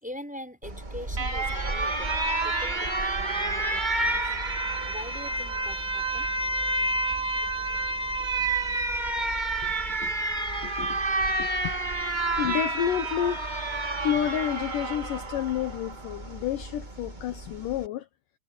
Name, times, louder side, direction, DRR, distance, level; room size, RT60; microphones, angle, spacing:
voice 1, 0.0-4.3 4.9-6.3, left 1 dB, ahead, 5.3 m, -43 dB
Alarm, 0.6-17.9, right 2 dB, 25° right, 1.0 m, -29 dB
voice 2, 9.6-10.1 10.6-11.0 11.4-11.8 12.4-13.4 14.0-18.1, left 10 dB, 70° left, 2.4 m, -30 dB
omnidirectional pair, 4.5 m